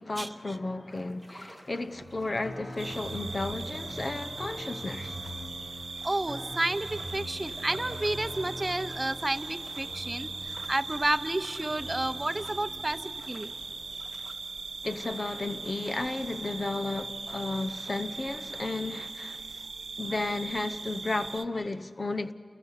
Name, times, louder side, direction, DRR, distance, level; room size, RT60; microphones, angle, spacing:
voice 1, 0.0-5.2 14.8-19.7 20.0-22.3, left 2 dB, 55° left, 0.8 m, -33 dB
sound 1, 0.9-16.0, equal, 10° left, 2.6 m, -55 dB
sound 2, 1.9-19.0 19.8-21.7, equal, 90° left, 7.8 m, -45 dB
sound 3, 2.8-21.4, right 4 dB, 80° right, 0.6 m, -40 dB
voice 2, 6.0-13.5, right 2 dB, 30° right, 0.8 m, -31 dB
29.5 x 22.0 x 5.7 m
wide cardioid pair, 60°, 0 cm